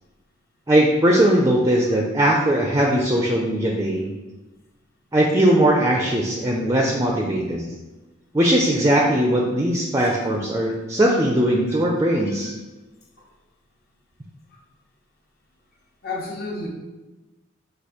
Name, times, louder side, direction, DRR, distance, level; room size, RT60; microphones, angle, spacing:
voice 1, 0.7-4.1 5.1-7.7 8.3-12.5, right 1 dB, 15° right, -1 dB, 0.4 m, -19 dB
voice 2, 16.0-16.7, left 3 dB, 50° left, -2 dB, 0.9 m, -33 dB
4.2 x 2.6 x 4.8 m, 1.1 s
head